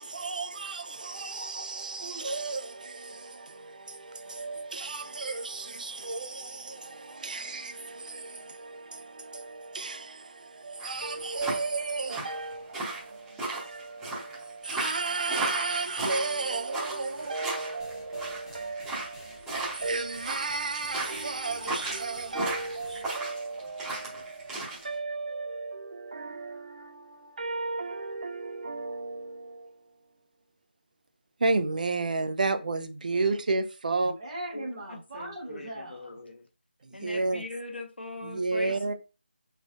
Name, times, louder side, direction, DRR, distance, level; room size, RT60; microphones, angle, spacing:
voice 1, 0.0-29.8 31.4-34.1 36.8-37.5 38.2-38.9, right 3 dB, 50° right, 0.5 m, -33 dB
sound 1, 10.8-24.8, right 2 dB, 5° right, 0.9 m, -35 dB
sound 2, 17.8-23.1, left 2 dB, 30° left, 0.8 m, -51 dB
voice 2, 34.0-36.2, right 1 dB, 30° right, 1.4 m, -39 dB
voice 3, 35.1-35.7 36.0-36.4 36.9-38.7, left 2 dB, 80° left, 1.0 m, -40 dB
4.0 x 3.3 x 2.4 m
figure-of-eight pair, 165°, 6 cm